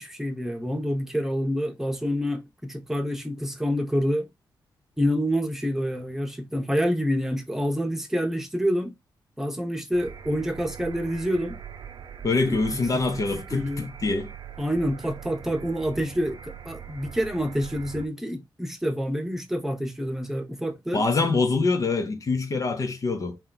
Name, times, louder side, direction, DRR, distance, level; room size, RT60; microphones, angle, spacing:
voice 1, 0.0-4.3 5.0-8.9 9.4-11.6 12.5-13.2 13.5-13.9 14.6-21.0, equal, 5° right, 1.0 m, -27 dB
sound 1, 9.9-18.1, right 8 dB, 65° right, 0.8 m, -41 dB
voice 2, 12.2-14.3 20.9-23.4, left 3 dB, 45° left, 0.7 m, -25 dB
4.3 x 3.0 x 3.9 m
wide cardioid pair, 120°, 8 cm